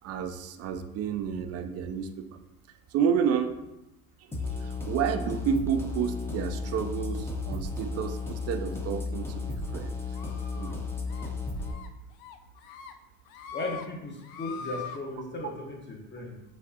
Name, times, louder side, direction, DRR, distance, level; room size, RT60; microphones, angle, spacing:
voice 1, 0.0-2.2 2.9-3.6 4.4-10.0 10.6-10.8, right 7 dB, 35° right, 7 dB, 0.4 m, -30 dB
sound 1, 4.3-11.7, left 4 dB, 5° left, 0.6 m, -34 dB
sound 2, 10.1-10.7 11.1-11.3 11.6-11.9 12.2-12.9 13.3-13.9 14.2-15.0, left 6 dB, 50° left, 0.5 m, -42 dB
voice 2, 13.5-16.4, left 2 dB, 25° left, 2 dB, 0.9 m, -36 dB
5.2 x 3.2 x 2.7 m, 0.93 s
supercardioid pair, 100°, 46 cm